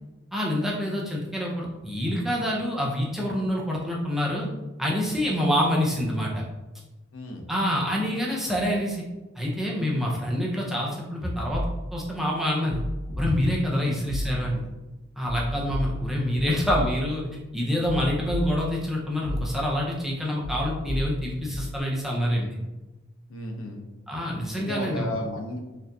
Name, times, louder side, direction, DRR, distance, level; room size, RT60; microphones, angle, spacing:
voice 1, 0.3-4.5 4.8-6.3 7.5-9.0 9.4-11.6 11.9-12.8 13.2-14.6 15.2-17.2 17.5-22.6 24.1-25.2, equal, ahead, -4 dB, 0.5 m, -26 dB
voice 2, 7.1-7.5 13.7-14.0 23.3-23.8 24.5-25.8, left 1 dB, 85° left, 3 dB, 0.6 m, -34 dB
sound 1, 11.5-12.1 12.7-13.7 14.1-14.7 15.2-17.3 17.8-18.9 19.2-19.9 20.4-21.8, equal, 80° right, 0.8 m, -33 dB
4.4 x 2.5 x 2.6 m, 1.1 s
head